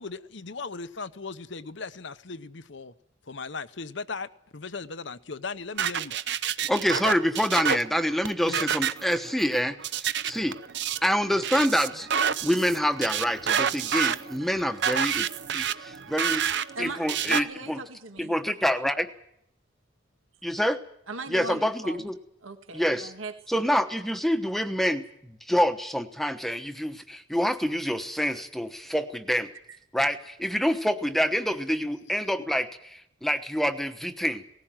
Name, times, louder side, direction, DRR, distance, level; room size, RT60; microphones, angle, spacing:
voice 1, 0.0-2.9 3.3-6.1 8.4-8.7, left 4 dB, 65° left, 14 dB, 0.9 m, -37 dB
sound 1, 5.8-17.4, right 8 dB, 60° right, 0.8 m, -29 dB
voice 2, 6.7-10.6 11.0-12.1 12.4-15.3 15.5-16.4 16.8-17.8 18.2-19.1 20.4-20.8 21.3-22.1 22.7-23.1 23.5-29.5 29.9-34.4, equal, ahead, 8 dB, 1.0 m, -26 dB
voice 3, 16.7-18.3 21.1-22.1 22.4-23.6 29.7-29.8, right 3 dB, 85° right, 6 dB, 2.0 m, -39 dB
18.5 x 15.5 x 9.0 m, 0.74 s
head